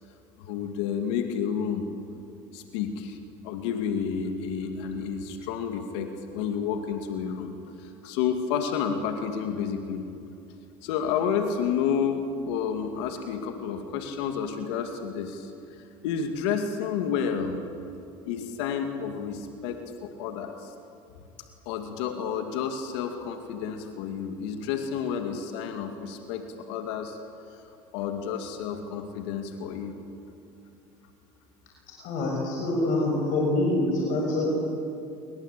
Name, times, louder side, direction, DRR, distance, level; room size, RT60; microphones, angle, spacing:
voice 1, 0.4-1.9 2.5-3.2 3.4-7.5 7.8-10.0 10.8-15.5 16.0-17.6 18.2-20.7 21.7-27.2 27.9-29.9, left 7 dB, 85° left, 5 dB, 2.4 m, -30 dB
voice 2, 32.0-34.5, left 2 dB, 70° left, -1 dB, 6.6 m, -25 dB
27.0 x 23.0 x 8.5 m, 2.6 s
supercardioid pair, 90°, 14 cm